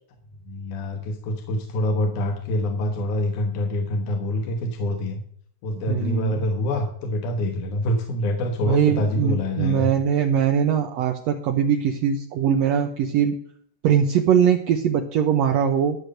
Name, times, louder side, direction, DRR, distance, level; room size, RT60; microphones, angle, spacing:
voice 1, 0.5-5.2 5.6-9.9, left 1 dB, 85° left, 4 dB, 2.6 m, -26 dB
voice 2, 5.9-6.5 8.6-13.4 13.8-16.0, right 8 dB, 70° right, 4 dB, 1.9 m, -21 dB
12.0 x 6.4 x 6.4 m, 0.64 s
omnidirectional pair, 3.4 m